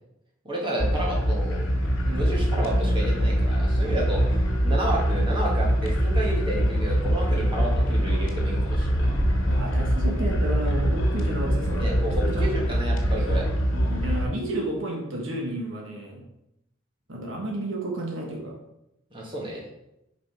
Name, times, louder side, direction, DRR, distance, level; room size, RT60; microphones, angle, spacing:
voice 1, 0.4-1.6 2.1-4.2 4.6-9.1 11.8-12.1 12.4-13.4 19.1-19.6, right 1 dB, 25° right, -3 dB, 1.5 m, -31 dB
sound 1, 0.8-14.2, equal, 75° left, 1.8 m, -23 dB
voice 2, 9.5-12.7 13.6-16.2 17.1-18.6, right 1 dB, 65° right, 0 dB, 1.3 m, -32 dB
5.6 x 4.9 x 4.6 m, 0.86 s
head